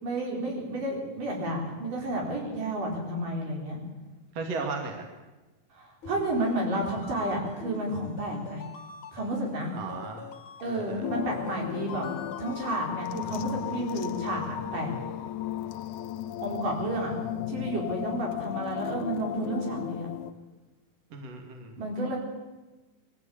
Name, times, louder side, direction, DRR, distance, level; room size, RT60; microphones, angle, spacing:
voice 1, 0.0-3.8 5.7-8.6 9.1-9.7 10.6-12.1 12.4-15.0 16.4-17.1 17.5-20.1 21.8-22.2, right 1 dB, 75° right, -1 dB, 6.1 m, -31 dB
voice 2, 4.3-5.1 9.7-10.2 10.6-11.1 21.1-21.7, right 4 dB, 55° right, 3 dB, 2.9 m, -36 dB
sound 1, 6.0-12.9, left 5 dB, 50° left, 1.8 m, -44 dB
sound 2, 11.0-20.3, left 12 dB, 75° left, 2.2 m, -35 dB
21.5 x 14.0 x 8.7 m, 1.2 s
omnidirectional pair, 3.8 m